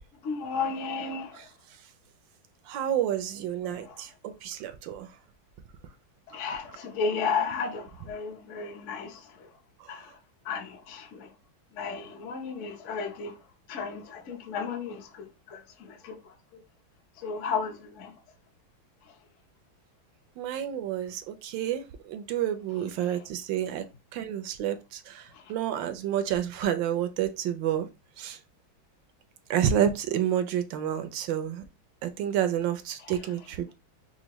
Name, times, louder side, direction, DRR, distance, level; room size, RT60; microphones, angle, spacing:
voice 1, 0.2-1.5 3.7-4.0 6.3-9.5 9.9-10.1 10.4-11.3 11.7-13.4 13.7-16.6 17.2-18.1 25.3-25.4 33.0-33.2, left 5 dB, 50° left, 0.9 m, -34 dB
voice 2, 2.7-5.1 20.4-23.8 24.1-27.9 28.2-28.4 29.5-31.6 32.0-33.7, right 10 dB, 75° right, 1.2 m, -29 dB
5.7 x 2.2 x 3.0 m
omnidirectional pair, 2.3 m